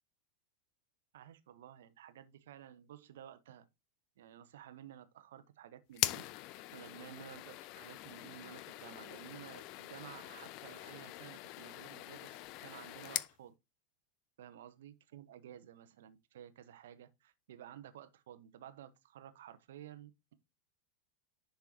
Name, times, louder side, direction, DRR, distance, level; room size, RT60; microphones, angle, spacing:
voice 1, 1.1-3.7 4.2-6.3 6.7-13.5 14.4-20.3, right 10 dB, 60° right, 0.9 m, -53 dB
sound 1, 5.9-13.3, left 17 dB, 40° left, 0.4 m, -42 dB
10.5 x 4.6 x 2.8 m
figure-of-eight pair, 90°, 0 cm